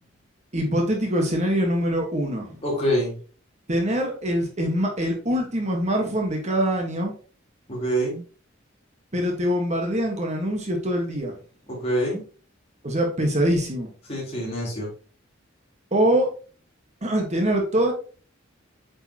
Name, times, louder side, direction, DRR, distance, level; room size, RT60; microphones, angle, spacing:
voice 1, 0.5-2.6 3.7-7.1 9.1-11.3 12.8-13.9 15.9-16.3 17.0-17.9, equal, 35° right, 2 dB, 1.4 m, -24 dB
voice 2, 2.6-3.2 7.7-8.2 11.7-12.2 14.1-14.9, equal, 30° left, -4 dB, 3.6 m, -25 dB
8.4 x 5.4 x 2.9 m, 0.38 s
head